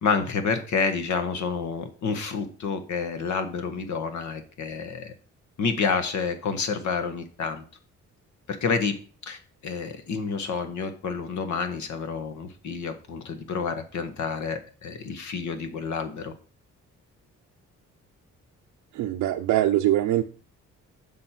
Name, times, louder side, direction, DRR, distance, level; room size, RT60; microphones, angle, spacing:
voice 1, 0.0-5.1 5.6-7.6 8.5-9.0 9.2-16.3, left 5 dB, 70° left, 8 dB, 1.5 m, -29 dB
voice 2, 18.9-20.2, right 13 dB, 90° right, 1 dB, 0.7 m, -23 dB
7.6 x 5.4 x 5.8 m, 0.39 s
cardioid pair, 90°, 30 cm